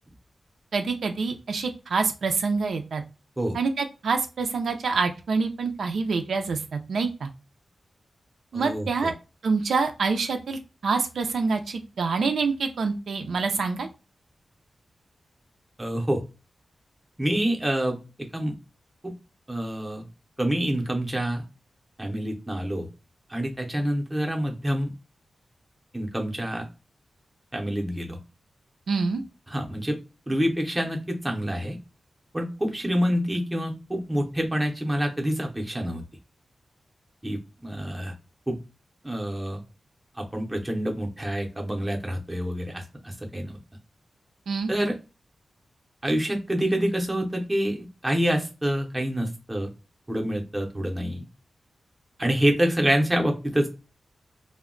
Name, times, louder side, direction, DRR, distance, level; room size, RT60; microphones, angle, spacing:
voice 1, 0.7-3.0 3.5-7.3 8.5-9.1 9.4-13.9 28.9-29.2 44.5-44.7, right 4 dB, 80° right, 5 dB, 0.4 m, -26 dB
voice 2, 8.5-9.1 15.8-16.2 17.2-18.5 19.0-19.1 19.5-20.1 20.4-21.4 22.0-22.9 23.3-24.9 25.9-26.6 27.5-28.2 29.5-30.0 30.3-31.8 32.3-36.0 37.2-38.1 38.5-38.6 39.0-39.6 40.2-43.6 44.7-44.9 46.0-49.7 50.1-51.3 52.2-53.7, equal, 10° right, 1 dB, 0.6 m, -27 dB
2.2 x 2.0 x 3.7 m, 0.29 s
wide cardioid pair, 155°, 0 cm